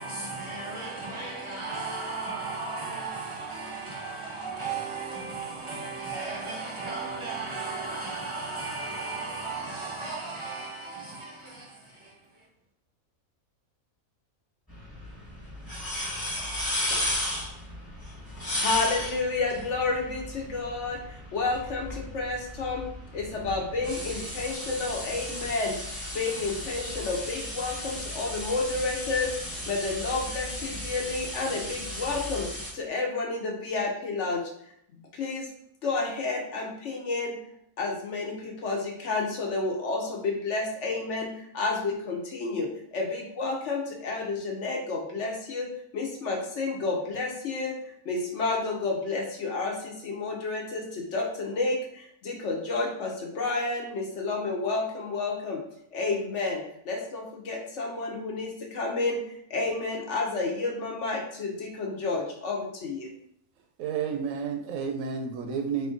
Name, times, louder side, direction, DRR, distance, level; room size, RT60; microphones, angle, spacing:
voice 1, 0.0-12.2, right 3 dB, 25° right, 0.7 m, -35 dB
sound 1, 14.7-32.7, left 1 dB, 15° left, 1.2 m, -35 dB
voice 2, 18.6-22.9 23.1-25.8 26.1-29.3 29.7-32.5 32.7-34.4 34.9-35.5 35.8-37.4 37.8-47.8 48.0-55.6 55.9-59.2 59.5-63.1, left 3 dB, 60° left, 1.0 m, -30 dB
voice 3, 63.8-65.9, right 6 dB, 75° right, 0.9 m, -31 dB
4.2 x 2.5 x 3.8 m
omnidirectional pair, 1.5 m